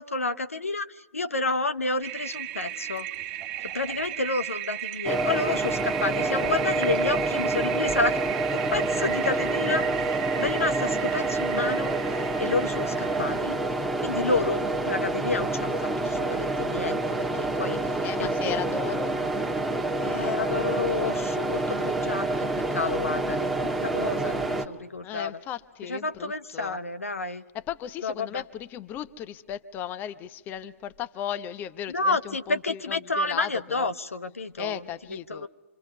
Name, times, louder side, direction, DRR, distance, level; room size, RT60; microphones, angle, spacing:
voice 1, 0.0-3.1 3.7-8.2 8.5-9.9 10.4-11.9 12.4-13.6 14.0-17.9 18.2-18.3 20.0-25.4 25.8-27.4 28.0-28.4 31.9-35.5, left 3 dB, 80° left, 11 dB, 0.9 m, -30 dB
Toilet flush, 2.0-13.6, right 12 dB, 35° right, 1.2 m, -35 dB
sound 1, 5.0-24.6, right 2 dB, ahead, 1.4 m, -27 dB
voice 2, 18.0-19.1 25.0-26.8 27.5-33.9 34.6-35.5, left 10 dB, 25° left, 14 dB, 0.8 m, -36 dB
26.5 x 26.5 x 5.5 m, 1.1 s
figure-of-eight pair, 110°, 8 cm